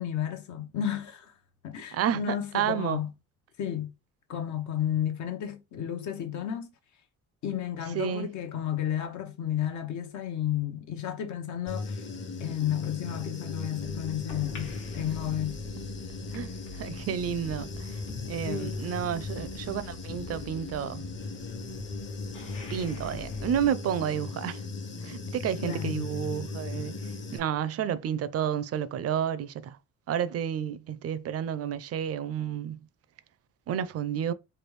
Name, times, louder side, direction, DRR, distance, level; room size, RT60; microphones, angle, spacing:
voice 1, 0.0-1.3 1.6-3.1 3.6-3.9 4.3-6.7 7.4-12.0 12.4-15.6 18.4-18.9 25.6-26.1, left 10 dB, 70° left, 0.8 m, -32 dB
voice 2, 1.9-3.0 7.9-8.3 16.3-21.1 22.7-24.6 25.0-26.9 27.3-29.8 30.1-32.9 33.7-34.3, right 9 dB, 55° right, 0.5 m, -31 dB
Human voice / Buzz, 11.7-27.4, left 3 dB, 40° left, 0.7 m, -38 dB
sound 1, 13.8-23.7, left 3 dB, 90° left, 1.4 m, -45 dB
3.3 x 2.3 x 3.1 m
cardioid pair, 90°, 30 cm